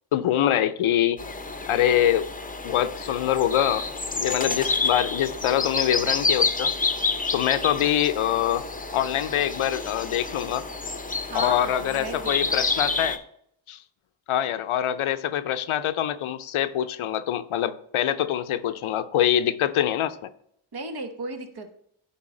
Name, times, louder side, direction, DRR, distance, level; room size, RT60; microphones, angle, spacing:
voice 1, 0.1-1.2 1.7-2.3 2.6-3.9 4.2-6.7 7.3-8.6 8.9-10.6 11.3-13.2 13.7-13.8 14.3-20.2, left 11 dB, 75° left, 0.6 m, -24 dB
sound 1, 1.2-13.2, left 3 dB, 15° left, 0.7 m, -29 dB
voice 2, 11.3-12.6 20.7-21.7, right 2 dB, 50° right, 1.2 m, -35 dB
9.6 x 4.0 x 3.8 m
cardioid pair, 55°, 49 cm